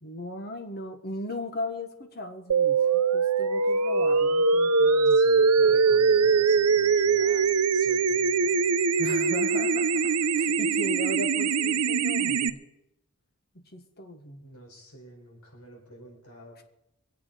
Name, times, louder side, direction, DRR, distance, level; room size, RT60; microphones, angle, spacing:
voice 1, 0.0-5.2 9.0-12.6 13.5-14.5, left 1 dB, 45° left, 6 dB, 1.5 m, -37 dB
sound 1, 2.5-12.5, right 5 dB, 85° right, 0.7 m, -22 dB
voice 2, 5.1-7.4 7.7-8.6 14.4-16.6, equal, 85° left, 0 dB, 4.6 m, -47 dB
24.0 x 8.2 x 5.2 m, 0.86 s
head